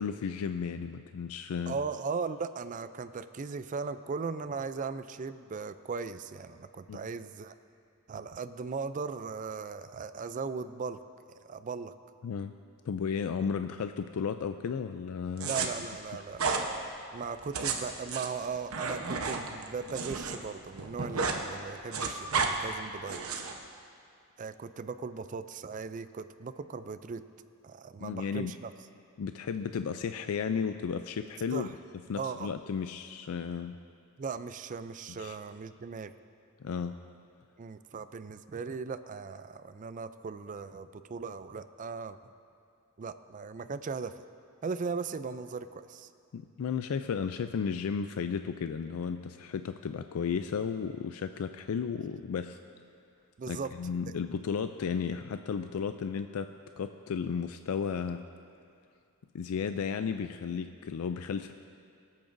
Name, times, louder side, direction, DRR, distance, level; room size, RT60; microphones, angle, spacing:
voice 1, 0.0-1.7 6.9-7.0 12.2-12.5 12.9-15.7 28.0-28.5 29.2-31.7 32.1-33.8 35.2-35.4 36.6-36.9 46.3-52.6 53.5-56.5 56.8-58.2 59.3-61.5, left 6 dB, 80° left, 9 dB, 0.4 m, -34 dB
voice 2, 1.7-7.5 8.1-11.0 11.4-11.9 15.5-16.5 17.1-23.2 24.4-27.2 27.6-28.7 31.5-31.7 32.2-32.5 34.2-36.1 37.6-42.2 43.0-44.1 44.6-46.1 53.4-53.7, right 5 dB, 35° right, 12 dB, 0.4 m, -38 dB
sound 1, 15.4-15.7 16.3-16.6 17.4-20.4 20.7-21.4 21.7-22.5 23.1-23.5, right 5 dB, 80° right, 1.0 m, -32 dB
24.5 x 8.7 x 2.6 m, 2.4 s
head